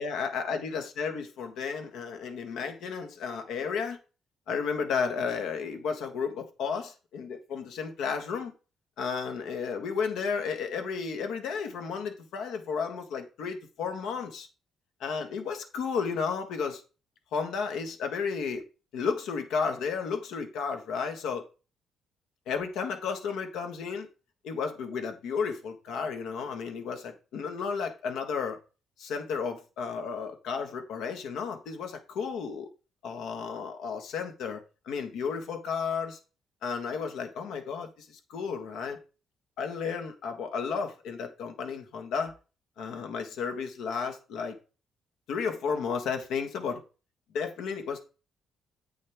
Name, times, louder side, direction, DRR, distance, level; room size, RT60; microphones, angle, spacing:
voice 1, 0.0-4.0 4.5-8.5 9.0-14.5 15.0-16.8 17.3-18.6 18.9-21.4 22.5-24.1 24.4-28.6 29.0-32.7 33.0-36.2 36.6-39.0 39.6-42.3 42.8-44.6 45.3-46.8 47.3-48.0, left 5 dB, 85° left, 1.6 m, -33 dB
8.5 x 6.5 x 3.5 m
cardioid pair, 180°, 0 cm